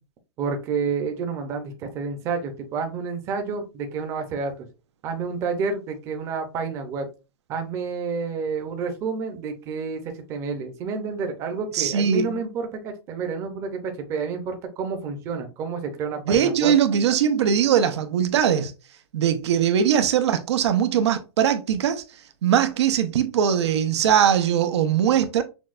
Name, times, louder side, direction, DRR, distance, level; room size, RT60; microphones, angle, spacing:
voice 1, 0.4-4.7 5.0-7.1 7.5-16.7, right 5 dB, 20° right, 0.6 m, -29 dB
voice 2, 11.7-12.4 16.3-18.7 19.1-22.0 22.4-25.4, right 8 dB, 85° right, 0.7 m, -21 dB
6.1 x 2.2 x 2.5 m
supercardioid pair, 170°, 14 cm